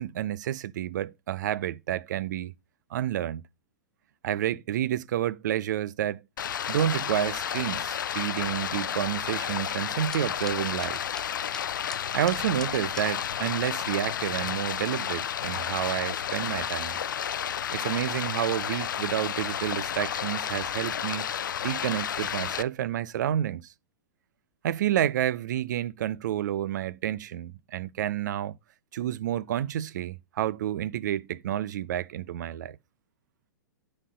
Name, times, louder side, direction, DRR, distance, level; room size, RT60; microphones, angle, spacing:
voice 1, 0.0-2.5 2.9-3.4 4.2-6.2 6.7-11.0 12.1-17.0 17.7-21.3 21.6-23.7 24.6-28.5 28.9-32.8, right 11 dB, 60° right, 0.6 m, -29 dB
Stream, 6.4-22.6, left 9 dB, 70° left, 0.5 m, -31 dB
sound 1, 10.1-13.1, left 2 dB, 5° left, 0.5 m, -46 dB
9.8 x 4.4 x 5.5 m
figure-of-eight pair, 110°, 11 cm